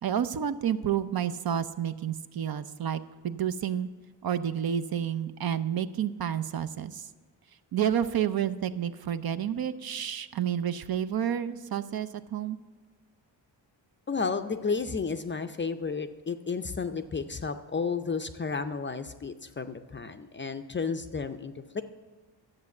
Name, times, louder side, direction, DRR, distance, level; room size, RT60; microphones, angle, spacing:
voice 1, 0.0-3.9 4.2-7.1 7.7-12.6, right 9 dB, 55° right, 12 dB, 0.6 m, -30 dB
voice 2, 14.1-21.8, left 5 dB, 25° left, 8 dB, 0.5 m, -32 dB
12.0 x 7.7 x 7.1 m, 1.3 s
cardioid pair, 105°, 45 cm